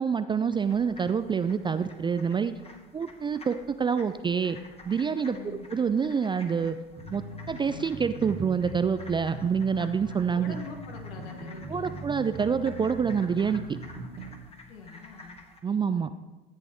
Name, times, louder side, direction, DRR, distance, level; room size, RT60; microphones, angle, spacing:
voice 1, 0.0-2.5 2.9-4.6 4.9-5.4 5.7-6.8 7.1-10.6 11.7-13.8 15.6-16.1, right 6 dB, 15° right, 12 dB, 0.3 m, -27 dB
sound 1, 0.5-15.6, left 2 dB, 20° left, 1.6 m, -51 dB
voice 2, 5.1-5.7 10.3-12.0 14.7-15.3, left 4 dB, 70° left, 3 dB, 1.5 m, -44 dB
sound 2, 7.0-14.4, right 1 dB, 35° right, 1.9 m, -41 dB
14.0 x 8.7 x 3.1 m, 1.2 s
figure-of-eight pair, 60°, 30 cm